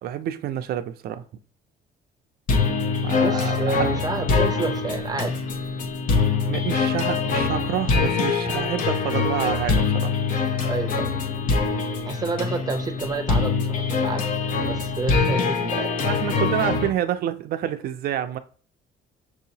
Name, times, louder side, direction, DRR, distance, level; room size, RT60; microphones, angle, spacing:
voice 1, 0.0-1.2 3.0-3.9 6.5-10.2 15.6-15.7 16.0-18.4, right 11 dB, 65° right, 0.5 m, -28 dB
sound 1, 2.5-16.9, left 5 dB, 55° left, 0.8 m, -24 dB
voice 2, 3.2-5.3 10.6-11.1 12.1-14.2 14.7-15.9, right 3 dB, 20° right, 0.6 m, -29 dB
6.0 x 2.8 x 2.8 m
cardioid pair, 110°, 17 cm